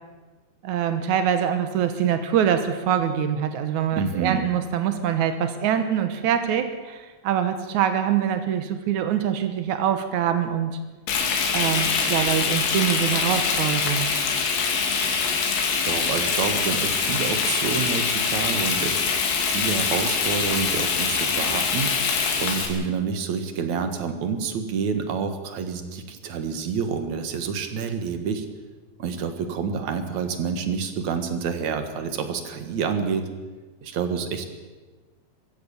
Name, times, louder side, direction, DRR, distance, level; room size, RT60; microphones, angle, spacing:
voice 1, 0.6-10.8 11.5-14.1, right 9 dB, 85° right, 8 dB, 1.7 m, -24 dB
voice 2, 3.9-4.5 15.8-19.0 19.5-21.9 22.4-28.5 29.0-33.2 33.8-34.4, right 6 dB, 55° right, 7 dB, 2.2 m, -28 dB
Frying (food), 11.1-22.7, left 5 dB, 90° left, 4.9 m, -24 dB
24.0 x 15.5 x 7.1 m, 1.3 s
omnidirectional pair, 5.2 m